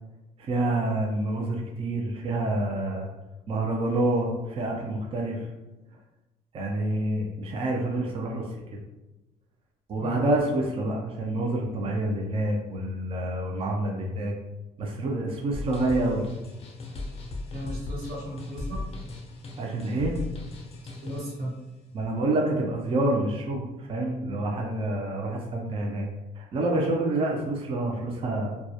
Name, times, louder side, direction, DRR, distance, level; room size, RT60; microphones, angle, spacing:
voice 1, 0.4-3.1 3.5-5.5 6.5-8.8 9.9-14.3 14.8-16.2 19.6-20.1 21.9-26.1 26.4-28.6, right 2 dB, 35° right, 0 dB, 0.4 m, -27 dB
sound 1, 15.5-21.4, left 2 dB, 35° left, 0.5 m, -37 dB
voice 2, 17.5-18.8 21.0-21.5, equal, 65° right, -5 dB, 1.1 m, -36 dB
2.2 x 2.0 x 2.7 m, 1.0 s
cardioid pair, 110°, 17 cm